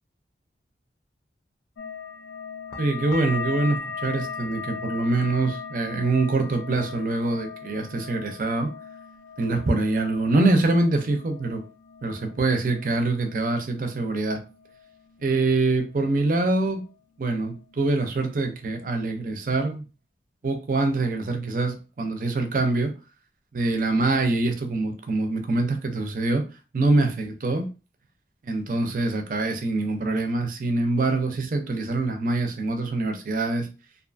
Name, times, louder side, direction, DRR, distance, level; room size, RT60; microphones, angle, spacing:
sound 1, 1.8-16.9 17.2-18.0 18.3-19.0 19.4-19.8, left 5 dB, 90° left, 0.4 m, -39 dB
voice 1, 2.8-8.7 9.4-11.6 12.0-14.4 15.2-16.8 17.2-19.9 20.4-22.9 23.5-26.4 26.7-27.7 28.4-33.7, right 2 dB, 45° right, 0.4 m, -24 dB
2.6 x 2.3 x 2.5 m
head